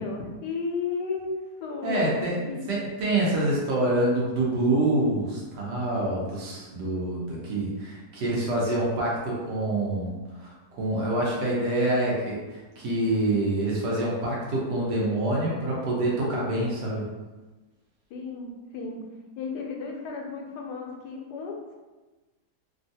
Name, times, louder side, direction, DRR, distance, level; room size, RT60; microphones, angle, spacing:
voice 1, 0.0-2.6 18.1-19.0 19.4-21.8, left 4 dB, 85° left, 0 dB, 1.2 m, -34 dB
voice 2, 1.8-2.4 2.7-17.1, right 1 dB, 90° right, -5 dB, 1.5 m, -26 dB
3.4 x 2.4 x 2.7 m, 1.2 s
omnidirectional pair, 1.7 m